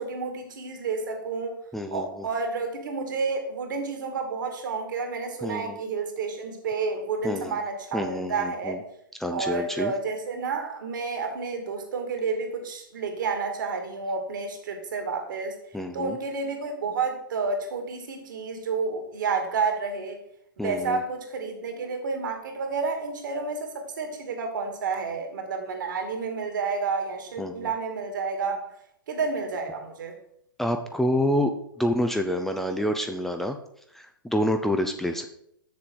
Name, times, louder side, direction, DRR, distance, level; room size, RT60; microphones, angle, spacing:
voice 1, 0.0-1.6 1.9-8.8 9.3-15.6 15.9-20.2 20.6-28.7 29.1-30.2, right 4 dB, 60° right, 5 dB, 2.2 m, -30 dB
voice 2, 1.7-2.3 5.4-5.8 7.2-7.6 7.9-8.8 9.2-9.9 15.7-16.2 20.6-21.0 27.4-27.7 30.6-31.5 31.8-33.6 33.9-35.3, left 1 dB, 5° left, 5 dB, 0.6 m, -27 dB
7.6 x 7.0 x 4.6 m, 0.72 s
figure-of-eight pair, 110°, 12 cm